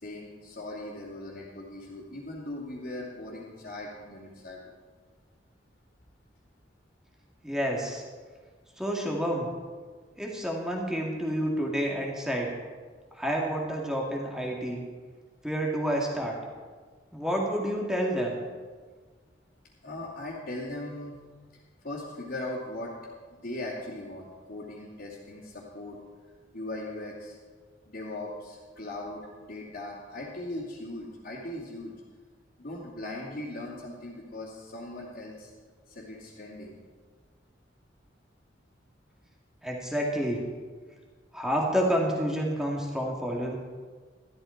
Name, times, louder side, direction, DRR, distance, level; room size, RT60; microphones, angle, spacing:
voice 1, 0.0-4.6 19.8-21.2 21.8-22.9 23.3-26.0 26.5-27.4 27.8-31.9 32.6-35.5 35.9-36.8, left 1 dB, 50° left, -8 dB, 2.7 m, -39 dB
voice 2, 7.4-8.0 8.8-9.5 10.2-12.5 13.1-14.8 15.4-16.4 17.1-18.4 39.6-40.4 41.3-43.6, equal, 5° right, -1 dB, 2.2 m, -29 dB
13.5 x 12.5 x 4.6 m, 1.5 s
head